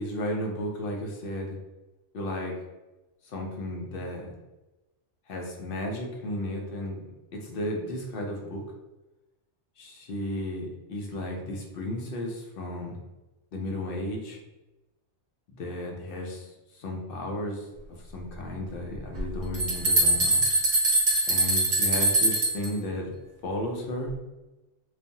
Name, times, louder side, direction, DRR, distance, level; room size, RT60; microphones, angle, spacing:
voice 1, 0.0-1.6 2.1-2.5 3.2-4.3 5.3-8.6 9.8-13.0 13.5-14.4 15.6-17.7 18.1-20.4 21.3-23.1 23.4-24.1, left 1 dB, 60° left, 1 dB, 0.7 m, -34 dB
sound 1, 19.1-22.7, right 1 dB, 45° right, 0.8 m, -23 dB
3.2 x 2.0 x 2.6 m, 1.0 s
omnidirectional pair, 1.3 m